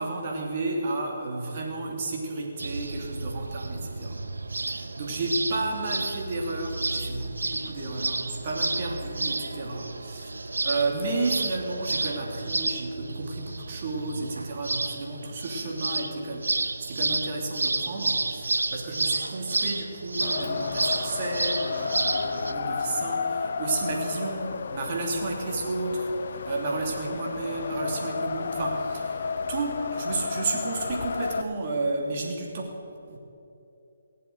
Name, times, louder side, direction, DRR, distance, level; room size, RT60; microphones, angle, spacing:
voice 1, 0.0-4.2 4.5-26.1 26.4-32.8 33.1-33.2, right 2 dB, 40° right, 0 dB, 2.9 m, -32 dB
sound 1, 2.6-22.5, right 3 dB, 75° right, 0.9 m, -31 dB
Wind, 20.2-31.4, left 5 dB, 55° left, 0.8 m, -32 dB
18.5 x 7.8 x 7.9 m, 2.8 s
figure-of-eight pair, 145°, 0 cm